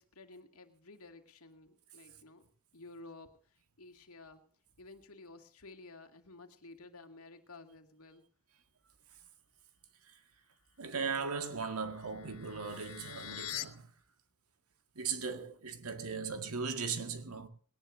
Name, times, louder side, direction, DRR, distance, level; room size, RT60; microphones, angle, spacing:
voice 1, 0.0-2.5 2.7-4.4 4.8-8.2, left 2 dB, 75° left, 2.3 m, -53 dB
voice 2, 10.8-13.9 15.0-17.5, right 5 dB, 75° right, 1.9 m, -38 dB
sound 1, 11.4-13.6, left 13 dB, 90° left, 1.0 m, -45 dB
20.5 x 18.0 x 2.7 m
head